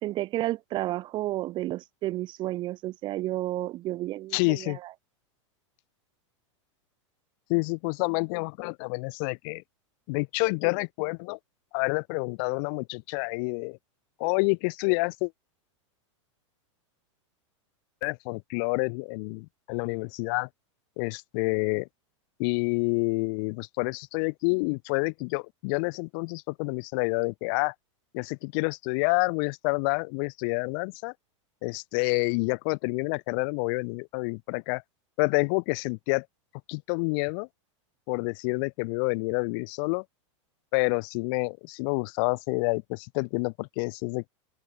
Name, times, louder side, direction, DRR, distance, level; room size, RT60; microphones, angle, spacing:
voice 1, 0.0-4.9, right 16 dB, 30° right, 2.3 m, -31 dB
voice 2, 4.3-4.8 7.5-9.6 10.1-11.4 11.7-13.8 14.2-15.3 18.0-20.5 21.0-21.9 22.4-27.7 28.1-31.1 31.6-34.8 35.2-36.2 36.7-37.5 38.1-40.0 40.7-44.3, left 34 dB, 45° left, 2.6 m, -28 dB
open air
supercardioid pair, 160°, 16 cm